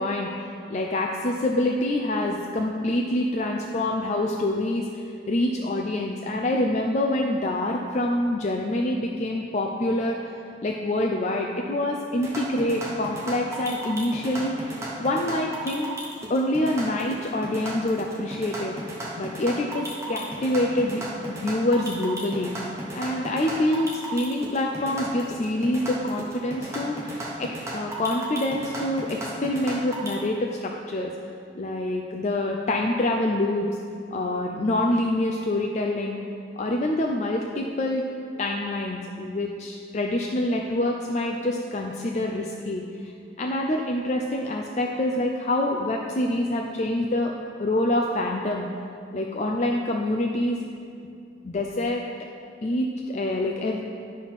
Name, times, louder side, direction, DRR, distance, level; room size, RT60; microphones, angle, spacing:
voice 1, 0.0-10.3 10.6-14.7 15.0-15.9 16.3-18.7 19.2-22.5 22.9-31.1 31.6-33.7 34.1-36.2 36.6-38.0 38.4-43.1 43.4-47.3 47.6-48.7 49.1-50.6 51.4-52.0 52.6-53.8, left 1 dB, 40° left, 1 dB, 0.4 m, -26 dB
sound 1, 12.2-30.1, right 1 dB, 15° right, 1.0 m, -35 dB
10.5 x 4.1 x 6.1 m, 2.4 s
head